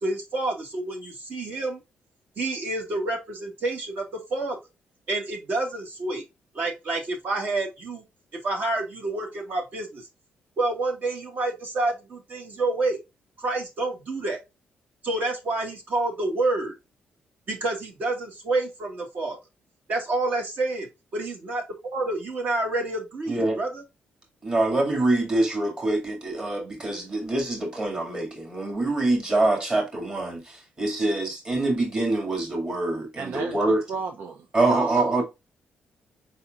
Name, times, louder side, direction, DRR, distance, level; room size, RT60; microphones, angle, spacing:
voice 1, 0.0-1.8 2.4-4.0 4.3-4.5 5.1-6.2 6.5-8.0 8.4-10.0 10.6-13.0 13.4-14.4 15.0-16.7 17.5-19.4 19.9-20.9 21.1-23.8, right 2 dB, 55° right, 1.9 m, -28 dB
voice 2, 23.3-23.6 24.4-33.8 34.5-35.2, right 2 dB, 30° right, 2.1 m, -25 dB
voice 3, 33.2-35.0, right 4 dB, 70° right, 0.7 m, -33 dB
4.8 x 4.2 x 2.4 m
cardioid pair, 125°, 3 cm